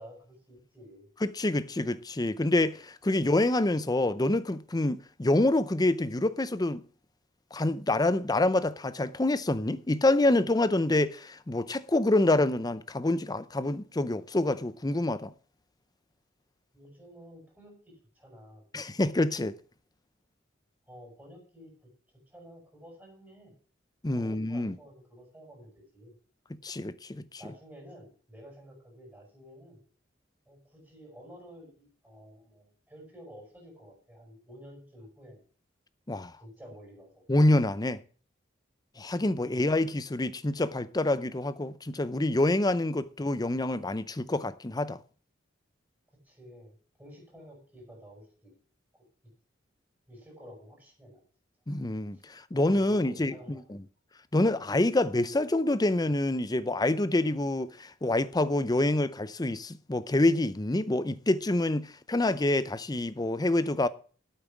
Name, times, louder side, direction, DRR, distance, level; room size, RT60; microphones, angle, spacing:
voice 1, 0.0-1.1 16.7-18.6 20.9-21.9 22.3-23.5 24.1-26.1 27.4-29.8 30.5-35.4 36.4-37.2 39.5-39.7 46.2-48.5 48.9-49.0 50.1-51.2 52.1-52.2 52.7-53.7, equal, 10° right, 6.8 m, -51 dB
voice 2, 1.2-6.8 7.5-15.3 18.7-19.6 24.0-24.7 26.5-27.2 36.1-36.4 37.3-38.0 39.0-45.0 51.7-53.8 54.3-63.9, left 2 dB, 20° left, 0.6 m, -27 dB
8.8 x 8.7 x 7.3 m
head